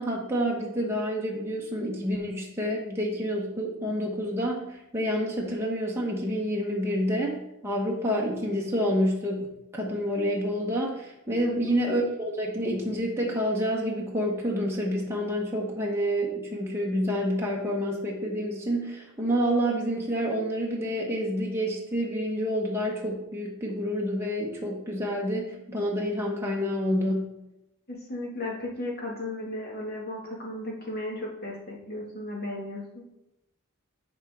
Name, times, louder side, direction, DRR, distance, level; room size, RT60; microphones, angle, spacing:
voice 1, 0.0-9.5 9.7-27.3, equal, 10° right, -3 dB, 1.2 m, -28 dB
voice 2, 27.9-33.0, left 1 dB, 45° left, -2 dB, 2.0 m, -35 dB
11.0 x 4.5 x 3.7 m, 0.86 s
head